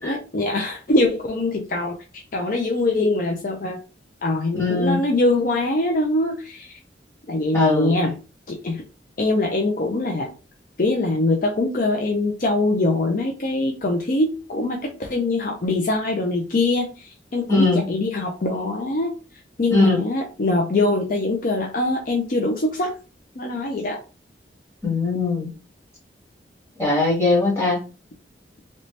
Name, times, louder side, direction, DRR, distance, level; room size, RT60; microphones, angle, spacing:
voice 1, 0.0-2.0 2.3-3.8 4.2-6.7 7.3-8.2 8.5-8.8 9.2-10.3 10.8-19.1 19.6-22.9 23.4-24.0, left 2 dB, 50° left, 1 dB, 0.5 m, -23 dB
voice 2, 4.5-5.0 7.5-7.9 17.5-17.8 19.7-20.0 24.8-25.5 26.8-27.8, left 3 dB, 15° left, -5 dB, 1.6 m, -20 dB
3.1 x 2.7 x 3.2 m, 0.34 s
head